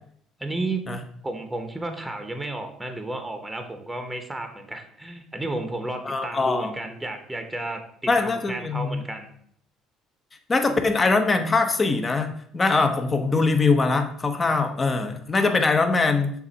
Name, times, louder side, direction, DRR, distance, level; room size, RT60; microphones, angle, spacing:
voice 1, 0.4-0.8 1.2-9.3 15.4-15.6, right 2 dB, 10° right, 5 dB, 1.0 m, -32 dB
voice 2, 6.0-6.7 8.1-9.0 10.5-16.3, left 3 dB, 25° left, 6 dB, 0.9 m, -22 dB
7.0 x 2.7 x 5.3 m, 0.64 s
supercardioid pair, 90°, 0 cm